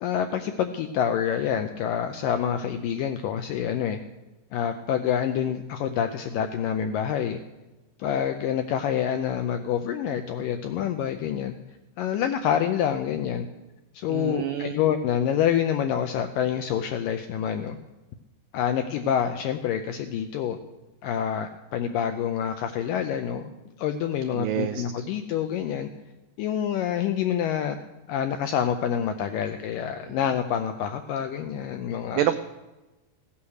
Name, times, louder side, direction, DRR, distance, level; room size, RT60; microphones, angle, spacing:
voice 1, 0.0-4.0 4.5-7.4 8.0-11.6 12.0-13.5 13.9-17.8 18.5-20.6 21.0-23.5 23.8-25.9 26.4-27.8 28.1-32.2, left 9 dB, 85° left, 7 dB, 1.9 m, -27 dB
voice 2, 14.1-14.8 24.3-24.8 30.0-30.2 32.2-32.3, right 12 dB, 90° right, 9 dB, 1.9 m, -27 dB
16.5 x 8.7 x 6.4 m, 1.1 s
omnidirectional pair, 4.6 m